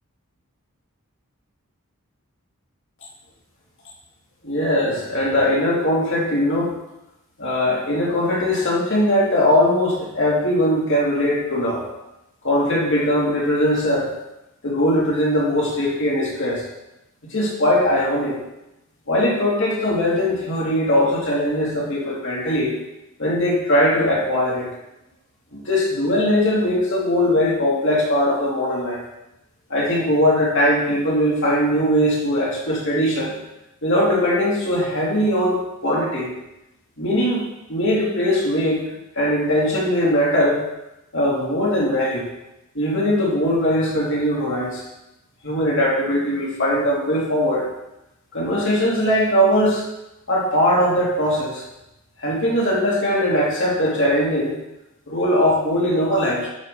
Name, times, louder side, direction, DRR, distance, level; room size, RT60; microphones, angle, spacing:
voice 1, 4.4-6.7 7.4-11.8 12.4-14.1 14.6-16.6 17.3-18.4 19.1-22.8 23.2-24.7 25.5-29.0 29.7-33.4 33.8-36.3 37.0-37.4 37.7-38.8 39.1-40.6 41.1-42.2 42.7-44.8 45.4-47.7 48.3-49.8 50.3-51.6 52.2-54.5 55.1-56.5, left 1 dB, 55° left, -5 dB, 2.7 m, -20 dB
11.0 x 5.1 x 3.9 m, 0.91 s
head